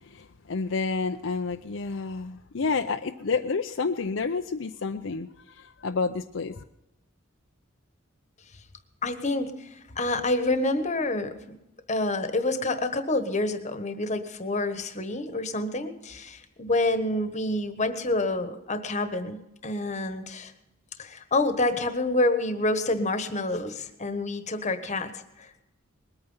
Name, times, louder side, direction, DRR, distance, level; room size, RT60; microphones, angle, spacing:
voice 1, 0.0-5.3 5.5-6.6, left 4 dB, 70° left, 6 dB, 0.6 m, -29 dB
voice 2, 9.0-11.4 11.9-19.4 19.6-20.5 21.0-25.6, left 2 dB, 35° left, 10 dB, 1.3 m, -28 dB
20.5 x 8.9 x 5.6 m, 0.91 s
head